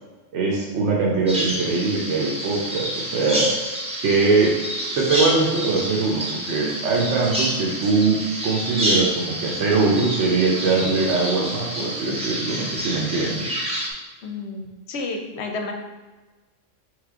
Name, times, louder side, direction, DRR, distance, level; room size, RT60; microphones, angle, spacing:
voice 1, 0.3-3.5 4.0-4.6 4.9-8.2 8.4-13.5, right 3 dB, 70° right, -3 dB, 1.0 m, -22 dB
Bird vocalization bird call bird song, 1.3-13.9, equal, 5° right, 0.5 m, -28 dB
voice 2, 14.2-15.7, left 3 dB, 70° left, 3 dB, 0.8 m, -31 dB
3.6 x 3.3 x 3.6 m, 1.3 s
omnidirectional pair, 1.3 m